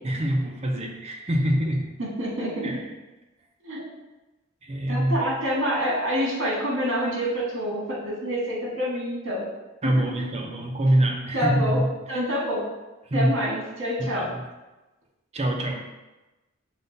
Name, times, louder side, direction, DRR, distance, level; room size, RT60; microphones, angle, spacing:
voice 1, 0.0-1.9 2.6-2.8 4.6-5.2 9.8-12.2 13.1-13.4 14.0-14.4 15.3-15.8, right 1 dB, 30° right, 1 dB, 0.5 m, -25 dB
voice 2, 2.0-2.8 3.6-3.8 4.9-9.4 9.8-10.0 11.3-11.8 12.1-12.6 13.1-14.2, equal, 65° right, -4 dB, 1.5 m, -27 dB
5.2 x 2.2 x 3.9 m, 1.1 s
head